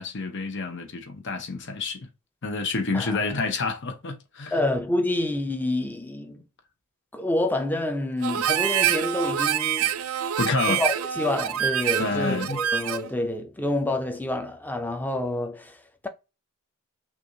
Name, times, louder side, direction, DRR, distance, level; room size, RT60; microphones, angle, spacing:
voice 1, 0.0-2.0 2.4-4.6 10.4-10.8 12.0-12.6, left 3 dB, 55° left, 0.9 m, -28 dB
voice 2, 4.5-6.4 7.1-10.0 10.7-16.1, left 1 dB, 10° left, 0.5 m, -28 dB
Harmonica, 8.2-13.1, right 10 dB, 75° right, 0.4 m, -26 dB
6.0 x 2.5 x 2.7 m
head